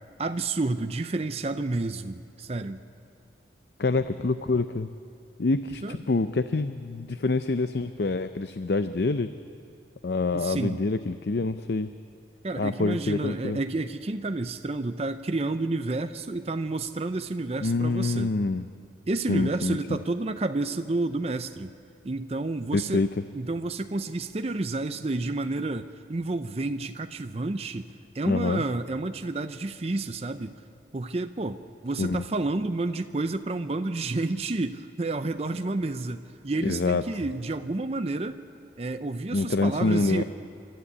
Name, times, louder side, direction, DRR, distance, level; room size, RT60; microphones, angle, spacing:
voice 1, 0.2-2.8 5.7-6.0 10.3-10.8 12.4-18.3 19.1-21.7 22.0-23.0 23.3-27.9 28.1-30.5 30.9-38.4 38.8-40.2, right 2 dB, 35° right, 9 dB, 0.5 m, -30 dB
voice 2, 3.8-4.9 5.4-9.3 10.0-11.9 12.6-13.6 17.6-18.6 19.3-20.0 22.7-23.1 28.3-28.6 32.0-32.2 36.6-37.0 39.3-40.2, left 3 dB, 60° left, 11 dB, 0.5 m, -26 dB
29.5 x 12.5 x 8.5 m, 2.5 s
head